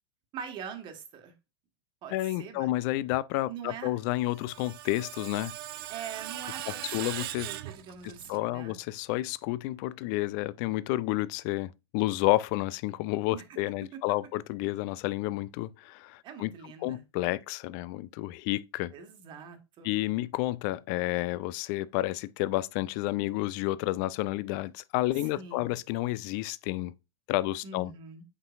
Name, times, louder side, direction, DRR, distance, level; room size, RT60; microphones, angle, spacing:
voice 1, 0.3-1.3 2.0-2.7 3.4-4.0 5.9-8.8 13.3-13.6 13.9-14.0 16.2-17.0 18.9-19.9 25.3-25.7 27.6-28.2, right 7 dB, 35° right, 1.5 m, -43 dB
voice 2, 2.1-5.5 6.9-7.5 8.0-16.5 16.8-18.9 19.8-26.9 27.3-27.9, left 17 dB, 40° left, 0.3 m, -30 dB
Screech, 4.1-8.4, right 14 dB, 55° right, 0.5 m, -40 dB
7.8 x 5.9 x 2.5 m
figure-of-eight pair, 95°, 15 cm